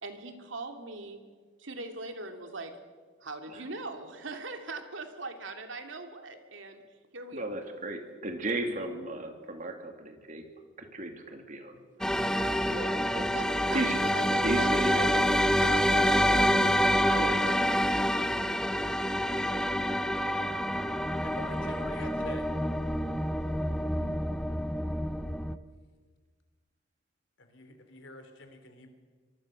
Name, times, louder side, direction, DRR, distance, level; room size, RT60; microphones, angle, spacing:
voice 1, 0.0-1.2 1.6-2.8 3.2-6.8 7.1-7.6 13.3-17.6, right 3 dB, 70° right, 6 dB, 2.6 m, -41 dB
voice 2, 7.3-10.5 10.8-11.8 12.5-13.3 13.7-14.0 14.4-15.3 16.2-16.4 17.2-17.4, right 2 dB, 40° right, 5 dB, 2.8 m, -35 dB
sound 1, 12.0-25.6, equal, 5° left, 0.7 m, -27 dB
voice 3, 21.2-22.5 27.4-28.9, left 2 dB, 65° left, 7 dB, 3.5 m, -45 dB
25.0 x 23.5 x 6.6 m, 1.5 s
head